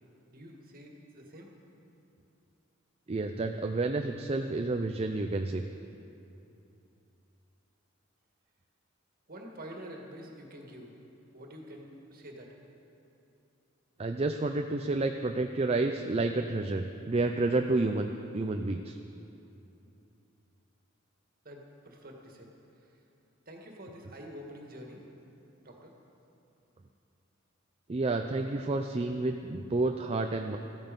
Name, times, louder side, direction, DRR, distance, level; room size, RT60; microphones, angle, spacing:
voice 1, 0.3-1.5 9.3-10.9 11.3-12.6 21.4-22.5 23.5-25.0 25.6-25.9, equal, 45° right, 1 dB, 1.9 m, -47 dB
voice 2, 3.1-5.6 14.0-18.1 18.3-19.0 27.9-30.6, right 2 dB, 30° right, 5 dB, 0.5 m, -30 dB
14.5 x 14.0 x 5.3 m, 2.8 s
head